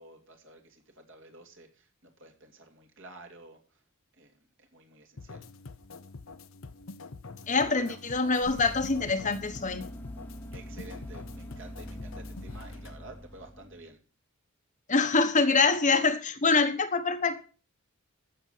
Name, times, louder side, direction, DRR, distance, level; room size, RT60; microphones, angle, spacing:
voice 1, 0.0-3.8 4.2-5.5 7.4-8.0 10.5-14.0 15.1-15.3, right 2 dB, 55° right, 2.7 m, -50 dB
sound 1, 5.2-13.0, left 3 dB, 60° left, 0.7 m, -46 dB
voice 2, 7.5-9.9 14.9-17.4, left 4 dB, 35° left, 1.1 m, -25 dB
sound 2, 8.0-13.9, equal, 10° left, 1.0 m, -44 dB
15.0 x 6.7 x 5.7 m
head